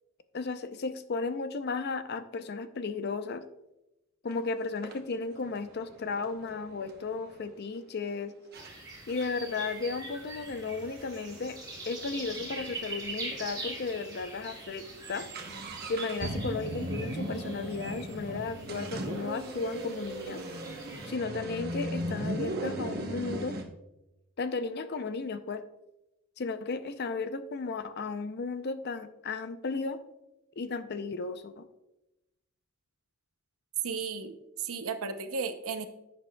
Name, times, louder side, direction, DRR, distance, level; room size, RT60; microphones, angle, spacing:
voice 1, 0.3-3.4 4.2-8.4 9.1-11.6 11.9-15.3 15.9-20.4 21.1-23.6 24.4-25.6 26.4-30.0 30.6-31.7, left 4 dB, 50° left, 11 dB, 0.5 m, -34 dB
sound 1, 4.3-4.4 4.8-7.5 8.1-8.2 8.5-8.7 9.1-12.8 13.0-13.1 13.3-13.4 14.0-14.2 14.5-23.6, right 1 dB, 45° right, 1.0 m, -38 dB
sound 2, 8.5-21.1, right 2 dB, 20° right, 2.1 m, -43 dB
voice 2, 33.8-35.9, right 5 dB, 80° right, 9 dB, 0.7 m, -35 dB
10.5 x 7.9 x 2.3 m, 0.94 s
head